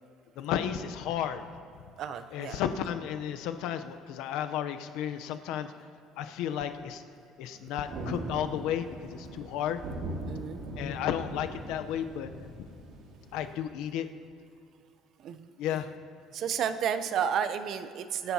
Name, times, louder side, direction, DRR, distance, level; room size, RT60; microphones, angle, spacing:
voice 1, 0.4-1.4 2.3-5.7 6.2-7.0 7.4-9.8 10.8-12.5 13.3-14.1 15.6-15.9, left 9 dB, 70° left, 8 dB, 0.7 m, -33 dB
voice 2, 2.0-2.6 7.5-7.7 8.0-8.1 10.3-10.6 15.2-15.5 16.3-18.3, right 8 dB, 45° right, 11 dB, 0.6 m, -32 dB
Thunder, 7.8-13.6, right 2 dB, 60° right, 2.1 m, -41 dB
25.0 x 10.5 x 2.8 m, 2.3 s
cardioid pair, 170°, 0 cm